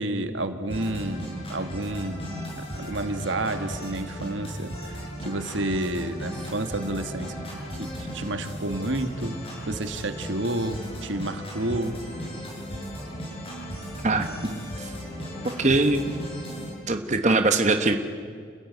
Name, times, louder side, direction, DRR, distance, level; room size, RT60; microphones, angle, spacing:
voice 1, 0.0-2.4 2.8-7.3 7.7-9.4 9.7-12.0, right 1 dB, 75° right, 9 dB, 1.8 m, -30 dB
sound 1, 0.7-16.7, equal, 30° left, 7.4 m, -36 dB
voice 2, 14.0-14.9 15.6-16.0 16.9-18.0, right 2 dB, 35° right, 6 dB, 1.3 m, -22 dB
29.5 x 15.5 x 9.4 m, 2.1 s
head